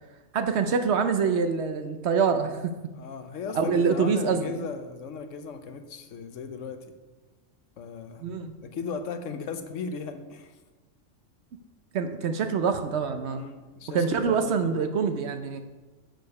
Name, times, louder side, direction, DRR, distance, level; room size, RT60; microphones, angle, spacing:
voice 1, 0.3-2.7 3.5-4.7 8.2-8.5 11.9-13.4 13.9-15.6, right 5 dB, 65° right, 8 dB, 0.9 m, -25 dB
voice 2, 2.9-6.8 7.8-8.3 8.6-10.6 13.3-14.8, left 5 dB, 75° left, 8 dB, 1.1 m, -37 dB
6.7 x 6.4 x 5.3 m, 1.2 s
omnidirectional pair, 1.3 m